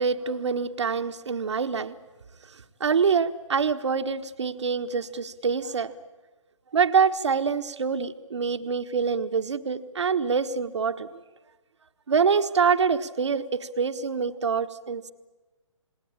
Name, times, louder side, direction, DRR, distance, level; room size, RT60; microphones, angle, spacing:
voice 1, 0.0-2.0 2.8-5.9 6.7-11.1 12.1-15.1, right 5 dB, 65° right, 10 dB, 1.4 m, -25 dB
28.0 x 19.5 x 8.7 m, 1.2 s
figure-of-eight pair, 135°, 16 cm